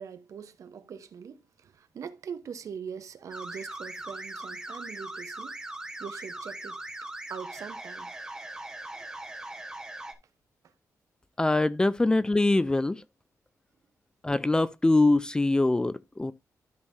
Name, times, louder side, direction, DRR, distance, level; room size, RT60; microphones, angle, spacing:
voice 1, 0.0-5.6 6.0-6.8 7.3-8.1, right 7 dB, 65° right, 0.9 m, -42 dB
sound 1, 3.3-10.1, right 2 dB, 10° right, 1.3 m, -40 dB
voice 2, 11.4-13.0 14.2-16.3, left 2 dB, 15° left, 0.4 m, -23 dB
12.5 x 5.5 x 2.6 m
wide cardioid pair, 160°, 6 cm